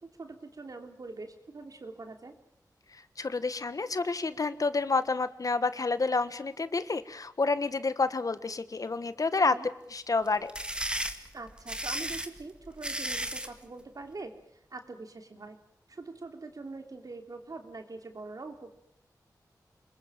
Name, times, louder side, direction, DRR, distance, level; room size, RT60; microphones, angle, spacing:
voice 1, 0.0-2.4 9.4-9.7 11.3-15.6 15.9-18.7, right 3 dB, 60° right, 6 dB, 3.3 m, -43 dB
voice 2, 2.9-9.5 9.9-10.5, left 3 dB, 55° left, 13 dB, 1.5 m, -29 dB
sound 1, 10.3-13.6, right 1 dB, 15° right, 2.2 m, -34 dB
27.0 x 22.0 x 7.4 m, 0.79 s
wide cardioid pair, 75°, 7 cm